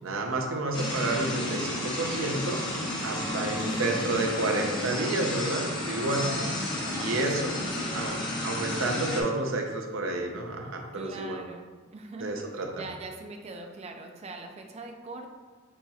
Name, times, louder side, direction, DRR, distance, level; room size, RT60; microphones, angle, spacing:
voice 1, 0.0-2.6 3.0-6.3 6.9-7.5 7.9-11.4 12.2-12.8, right 2 dB, 70° right, 3 dB, 0.6 m, -30 dB
sound 1, 0.7-9.2, left 1 dB, 20° left, 0.8 m, -32 dB
voice 2, 3.3-4.3 6.0-8.6 8.9-9.4 10.9-11.7 11.9-12.4 12.7-15.3, right 2 dB, 30° right, 4 dB, 0.4 m, -42 dB
7.0 x 2.9 x 2.4 m, 1.4 s
head